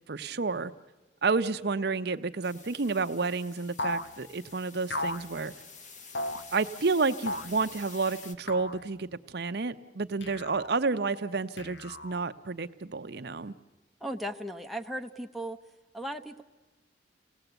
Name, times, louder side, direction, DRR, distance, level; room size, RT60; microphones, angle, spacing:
voice 1, 0.1-0.7 1.2-5.5 6.5-13.5, right 4 dB, 60° right, 10 dB, 0.7 m, -30 dB
sound 1, 2.4-8.4, left 5 dB, 40° left, 1.1 m, -49 dB
sound 2, 3.8-4.1 4.9-5.3 6.1-6.5 7.3-7.6 8.5-8.8 10.2-10.7 11.6-12.3, left 2 dB, 70° left, 1.0 m, -35 dB
voice 2, 14.0-15.6 15.9-16.4, equal, ahead, 2 dB, 0.7 m, -36 dB
28.0 x 18.5 x 8.0 m, 1.2 s
head